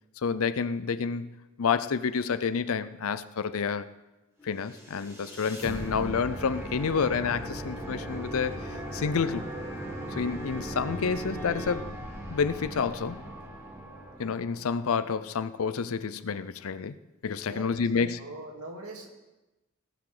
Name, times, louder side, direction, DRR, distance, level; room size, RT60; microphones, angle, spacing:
voice 1, 0.2-1.3 1.6-3.9 4.4-9.5 10.2-11.9 12.3-13.2 14.2-17.0 17.2-18.2, left 6 dB, 70° left, 0.5 m, -29 dB
Contrasting Major and Minor Tones, 4.4-11.8, right 1 dB, 10° left, 2.4 m, -43 dB
sound 1, 4.7-14.9, right 1 dB, 10° right, 2.7 m, -39 dB
voice 2, 17.5-19.1, right 2 dB, 90° right, 2.4 m, -42 dB
18.0 x 6.0 x 4.9 m
head